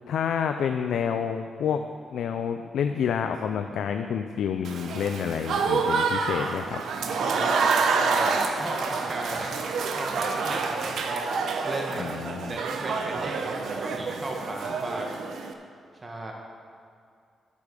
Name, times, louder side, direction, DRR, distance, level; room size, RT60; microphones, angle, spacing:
voice 1, 0.0-1.8 2.1-6.8 12.0-12.6, left 7 dB, 85° left, 6 dB, 0.4 m, -28 dB
Applause / Crowd, 4.6-15.5, right 4 dB, 80° right, 0.8 m, -28 dB
voice 2, 7.1-12.1 12.5-15.1 16.0-16.3, right 1 dB, 25° right, 0 dB, 1.2 m, -35 dB
11.0 x 8.4 x 5.0 m, 2.4 s
cardioid pair, 120°, 0 cm